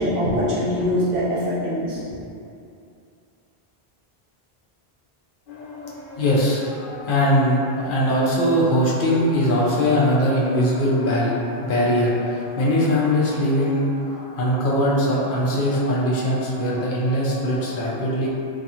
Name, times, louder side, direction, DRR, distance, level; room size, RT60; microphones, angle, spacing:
voice 1, 0.0-2.1, equal, 65° right, -8 dB, 0.8 m, -23 dB
voice 2, 5.5-18.3, equal, 60° left, -5 dB, 0.7 m, -21 dB
2.4 x 2.3 x 2.7 m, 2.5 s
omnidirectional pair, 1.0 m